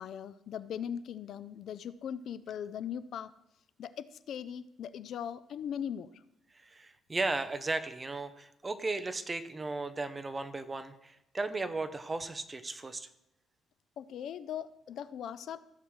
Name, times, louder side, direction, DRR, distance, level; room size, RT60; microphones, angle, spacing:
voice 1, 0.0-3.3 3.8-6.1 14.0-15.6, left 8 dB, 60° left, 15 dB, 0.4 m, -39 dB
voice 2, 6.5-13.1, right 3 dB, 20° right, 10 dB, 0.7 m, -36 dB
14.5 x 7.5 x 3.2 m, 0.81 s
cardioid pair, 140°, 0 cm